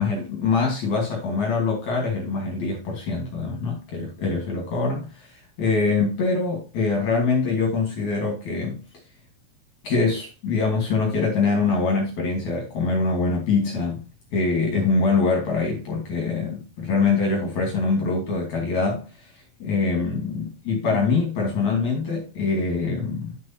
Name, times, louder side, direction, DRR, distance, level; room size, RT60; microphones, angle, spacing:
voice 1, 0.0-8.8 9.8-14.0 14.3-23.4, left 4 dB, 55° left, 2.5 m, -24 dB
11.0 x 6.1 x 2.8 m
omnidirectional pair, 4.8 m